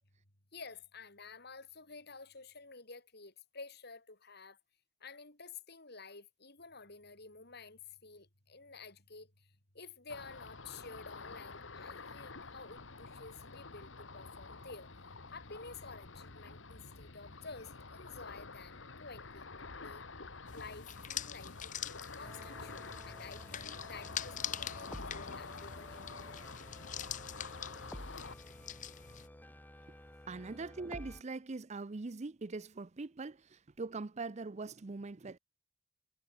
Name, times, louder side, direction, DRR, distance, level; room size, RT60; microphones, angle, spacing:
voice 1, 0.5-4.6 5.0-14.9 15.3-19.5 19.8-20.1 20.5-21.7 22.1-26.4 30.3-30.4, left 4 dB, 60° left, 6.8 m, -51 dB
Ocean, 10.1-28.3, left 3 dB, 90° left, 1.9 m, -49 dB
sound 1, 20.5-29.3, left 10 dB, 40° left, 0.7 m, -45 dB
sound 2, 22.2-31.2, equal, 10° left, 5.4 m, -52 dB
voice 2, 30.3-35.4, right 3 dB, 35° right, 0.6 m, -42 dB
head